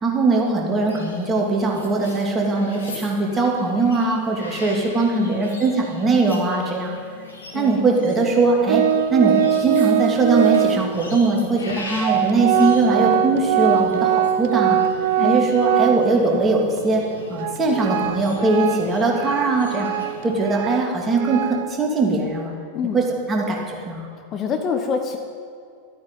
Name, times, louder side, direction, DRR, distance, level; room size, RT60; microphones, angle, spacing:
voice 1, 0.0-6.9 7.5-8.8 9.1-14.8 15.2-19.9 20.2-22.5 22.9-24.1, right 3 dB, 20° right, -1 dB, 2.9 m, -21 dB
sound 1, 0.8-20.6, left 3 dB, 70° left, 2.4 m, -39 dB
voice 2, 5.1-5.6 7.5-7.8 15.2-15.5 22.7-23.0 24.3-25.2, left 6 dB, 30° left, 5 dB, 1.1 m, -26 dB
Organ, 8.7-11.0 11.7-11.8 12.0-16.4 16.8-16.9 17.3-21.7, right 9 dB, 50° right, 0.7 m, -22 dB
13.0 x 9.4 x 9.1 m, 2.2 s
figure-of-eight pair, 90°, 0 cm